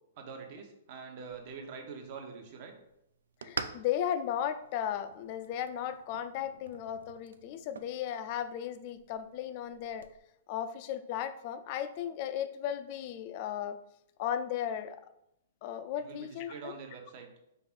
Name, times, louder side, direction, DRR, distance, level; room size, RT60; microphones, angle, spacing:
voice 1, 0.2-2.7 16.0-17.3, right 5 dB, 45° right, 3 dB, 0.9 m, -45 dB
sound 1, 1.2-10.2, right 5 dB, 90° right, 0.4 m, -47 dB
voice 2, 3.4-10.1 10.5-13.8 14.2-15.0 15.6-16.8, left 10 dB, 40° left, 11 dB, 0.3 m, -35 dB
5.5 x 2.5 x 3.5 m, 0.82 s
hypercardioid pair, 150°, 0 cm